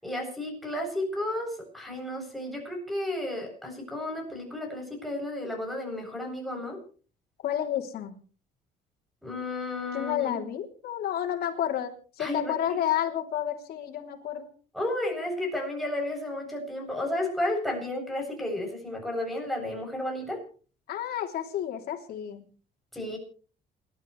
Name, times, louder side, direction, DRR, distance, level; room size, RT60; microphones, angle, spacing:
voice 1, 0.0-6.8 9.2-10.4 12.2-12.8 14.7-20.4 22.9-23.2, left 1 dB, ahead, 0 dB, 8.0 m, -32 dB
voice 2, 7.4-8.1 9.9-14.5 20.9-22.4, left 10 dB, 70° left, 3 dB, 3.3 m, -30 dB
29.0 x 12.5 x 3.3 m, 0.40 s
cardioid pair, 125°, 17 cm